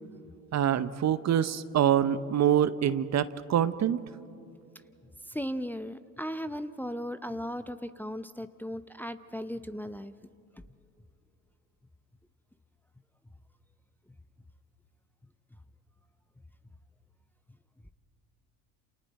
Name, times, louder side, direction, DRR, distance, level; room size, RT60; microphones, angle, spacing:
voice 1, 0.5-4.0, right 10 dB, 40° right, 14 dB, 0.8 m, -25 dB
voice 2, 5.3-10.1, equal, 5° left, 10 dB, 0.7 m, -36 dB
28.5 x 28.5 x 4.2 m, 2.5 s
hypercardioid pair, 70°, 41 cm